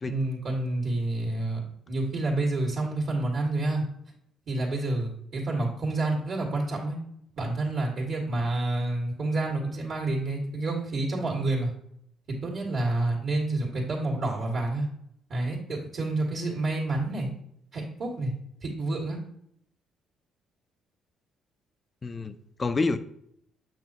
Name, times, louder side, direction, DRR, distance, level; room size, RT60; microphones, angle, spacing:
voice 1, 0.0-1.6 1.9-3.8 4.5-7.0 7.4-11.7 12.3-14.9 15.3-17.3 17.7-18.3 18.6-19.2, right 2 dB, 60° right, -3 dB, 1.8 m, -28 dB
voice 2, 22.0-23.0, left 3 dB, 30° left, 11 dB, 0.5 m, -28 dB
6.4 x 5.8 x 2.9 m, 0.71 s
supercardioid pair, 70°, 0 cm